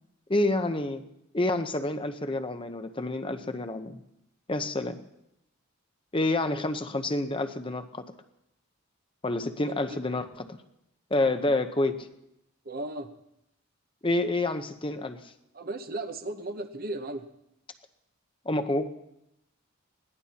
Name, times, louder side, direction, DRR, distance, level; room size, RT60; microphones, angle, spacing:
voice 1, 0.3-1.0 1.3-4.0 4.5-5.0 6.1-8.0 9.2-10.6 11.1-12.1 14.0-15.2 18.4-18.9, left 2 dB, 25° left, 8 dB, 0.8 m, -28 dB
voice 2, 12.6-13.1 15.5-17.2, right 2 dB, 45° right, 8 dB, 0.9 m, -35 dB
21.0 x 17.0 x 2.9 m, 0.82 s
head